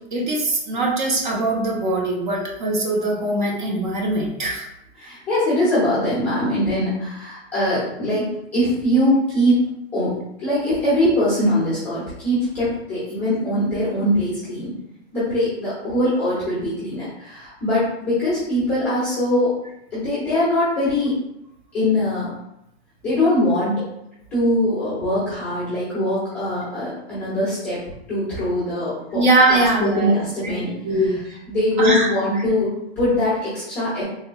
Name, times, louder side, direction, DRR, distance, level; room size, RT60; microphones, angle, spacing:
voice 1, 0.1-4.7 5.0-5.2 29.1-31.2 31.8-32.4, right 2 dB, 45° right, -1 dB, 0.7 m, -22 dB
voice 2, 5.0-8.3 8.5-9.7 9.9-10.1 10.4-14.7 15.1-19.5 19.9-21.1 21.7-22.3 23.0-23.7 24.3-27.8 28.1-29.2 29.5-30.7 31.5-34.0, left 1 dB, 5° left, -12 dB, 0.6 m, -22 dB
3.3 x 2.8 x 2.2 m, 0.82 s
hypercardioid pair, 180°, 33 cm